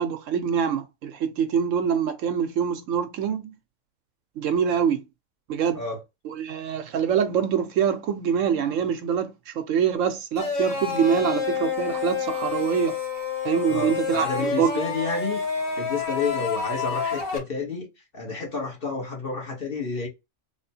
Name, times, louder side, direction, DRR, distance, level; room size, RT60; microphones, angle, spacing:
voice 1, 0.0-3.6 4.4-5.0 5.5-5.8 6.2-13.0 13.4-14.7, right 7 dB, 75° right, 1.0 m, -25 dB
sound 1, 10.4-17.4, left 5 dB, 85° left, 1.5 m, -28 dB
voice 2, 13.7-15.4 15.8-17.9 18.1-20.1, left 4 dB, 45° left, 1.3 m, -30 dB
3.3 x 2.1 x 4.2 m
omnidirectional pair, 1.4 m